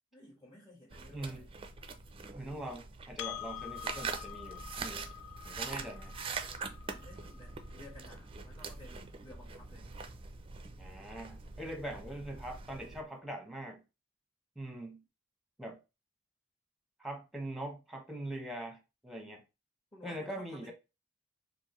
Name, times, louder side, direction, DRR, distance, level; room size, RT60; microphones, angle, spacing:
voice 1, 0.1-1.5 6.9-9.9 19.9-20.7, left 1 dB, 25° left, 1.4 m, -55 dB
sound 1, 0.9-13.0, right 4 dB, 30° right, 0.4 m, -44 dB
voice 2, 1.1-1.4 2.3-5.1 5.4-6.1 10.8-13.8 14.6-15.0 15.6-15.8 17.0-19.4 20.0-20.7, right 1 dB, ahead, 0.9 m, -42 dB
Percussion, 3.2-8.0, left 11 dB, 75° left, 0.4 m, -46 dB
4.6 x 2.6 x 3.0 m
head